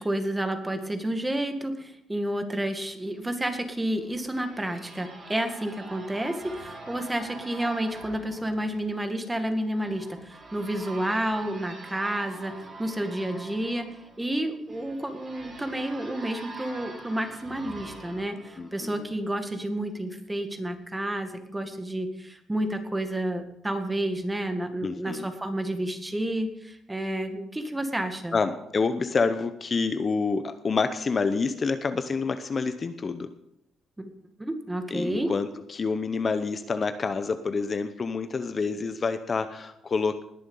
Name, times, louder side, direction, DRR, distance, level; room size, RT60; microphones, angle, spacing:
voice 1, 0.0-13.9 14.2-28.4 34.0-34.1 34.4-35.3, right 1 dB, 10° right, 7 dB, 1.9 m, -30 dB
sound 1, 3.7-19.4, right 2 dB, 30° right, 4.9 m, -44 dB
voice 2, 18.6-19.1 24.8-25.3 28.3-33.3 34.9-40.2, left 4 dB, 40° left, 10 dB, 0.8 m, -28 dB
20.0 x 7.1 x 5.5 m, 0.78 s
cardioid pair, 90°, 0 cm